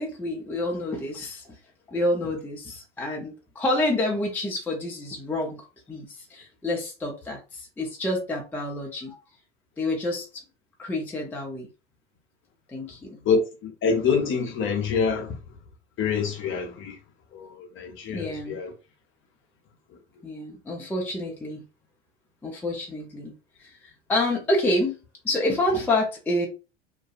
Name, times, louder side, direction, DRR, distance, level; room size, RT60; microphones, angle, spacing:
voice 1, 0.0-1.6 1.9-9.2 9.8-10.4 10.8-11.7 12.7-13.2 18.1-18.6 20.2-21.6 22.4-25.0 25.2-26.5, left 1 dB, 5° left, 0.5 m, -28 dB
voice 2, 13.3-15.3 16.0-16.9 17.3-17.5 17.8-18.7, left 5 dB, 35° left, 0.7 m, -25 dB
2.5 x 2.2 x 2.5 m
hypercardioid pair, 85°, 35 cm